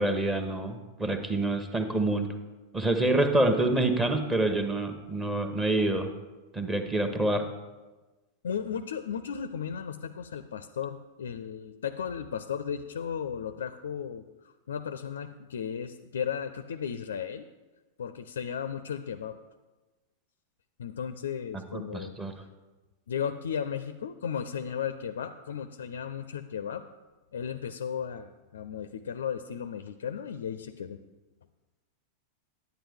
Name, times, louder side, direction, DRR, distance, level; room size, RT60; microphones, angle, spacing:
voice 1, 0.0-2.3 2.7-6.1 6.5-7.4 21.7-22.3, right 2 dB, 15° right, 7 dB, 0.9 m, -27 dB
voice 2, 8.4-17.5 18.0-19.3 20.8-22.1 23.1-26.8 27.3-31.0, left 7 dB, 65° left, 12 dB, 0.4 m, -35 dB
10.0 x 8.9 x 3.5 m, 1.2 s
figure-of-eight pair, 90°, 0 cm